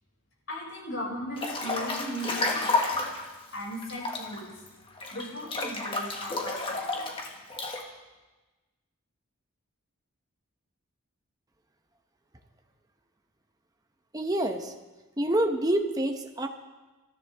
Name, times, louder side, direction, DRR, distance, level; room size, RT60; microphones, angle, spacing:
voice 1, 0.5-3.0 3.5-4.6 5.1-7.1, equal, 65° left, -4 dB, 6.4 m, -38 dB
Breathing / Bathtub (filling or washing) / Splash splatter, 1.4-3.3 3.8-7.8, left 3 dB, 25° left, 1.6 m, -31 dB
voice 2, 14.1-14.7 15.2-16.5, right 1 dB, 15° right, 4 dB, 1.0 m, -27 dB
25.5 x 13.5 x 3.6 m, 1.2 s
head